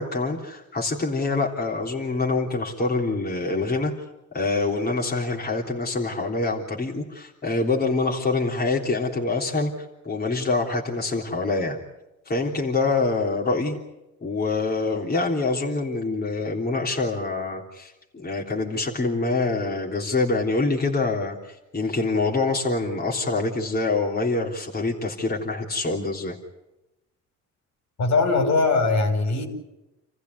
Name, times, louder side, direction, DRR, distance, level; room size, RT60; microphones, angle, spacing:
voice 1, 0.0-3.9 4.3-11.8 12.2-13.8 14.2-26.4, left 3 dB, 30° left, -1 dB, 3.5 m, -25 dB
voice 2, 28.0-29.5, left 3 dB, 65° left, 5 dB, 5.8 m, -21 dB
28.5 x 15.0 x 9.6 m, 0.97 s
cardioid pair, 90°, 30 cm